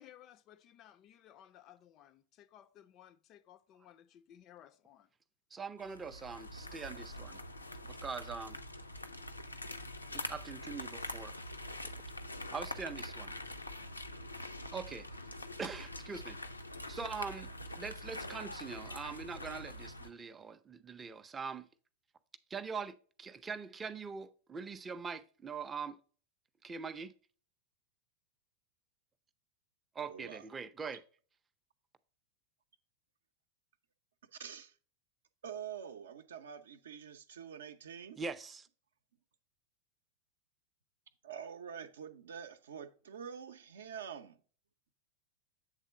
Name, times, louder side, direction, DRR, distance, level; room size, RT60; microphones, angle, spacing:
voice 1, 0.0-5.1, left 11 dB, 35° left, 0.4 m, -59 dB
voice 2, 5.5-7.4 7.9-8.6 10.1-11.4 12.5-13.3 14.7-15.1 15.6-16.4 16.9-21.7 22.5-26.0 26.6-27.1 29.9-31.0 38.2-38.7, right 5 dB, 15° right, 0.5 m, -43 dB
sound 1, 5.8-20.1, left 1 dB, 85° left, 0.5 m, -44 dB
voice 3, 30.0-30.4 34.3-34.7 35.4-38.2 41.2-44.4, right 8 dB, 65° right, 0.6 m, -46 dB
8.1 x 3.6 x 5.2 m
figure-of-eight pair, 90°, 0 cm